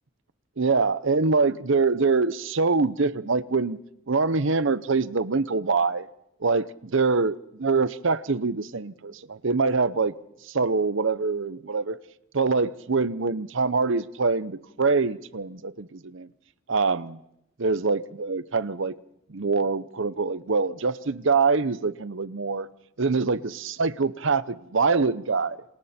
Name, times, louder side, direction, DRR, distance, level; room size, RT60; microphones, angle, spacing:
voice 1, 0.6-3.8 4.1-6.1 6.4-10.1 10.4-12.0 12.3-16.3 16.7-17.2 17.6-19.0 19.3-22.7 23.0-25.6, right 4 dB, 65° right, 0.8 m, -24 dB
29.0 x 27.5 x 4.4 m
head